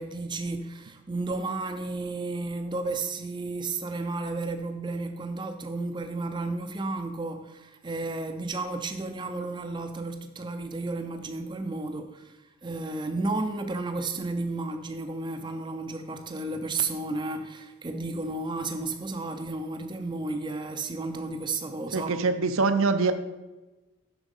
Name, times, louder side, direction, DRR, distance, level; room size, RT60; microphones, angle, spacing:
voice 1, 0.0-22.1, right 3 dB, 20° right, 0.5 m, -32 dB
voice 2, 21.9-23.1, right 4 dB, 70° right, 0.6 m, -24 dB
7.1 x 6.1 x 5.4 m
head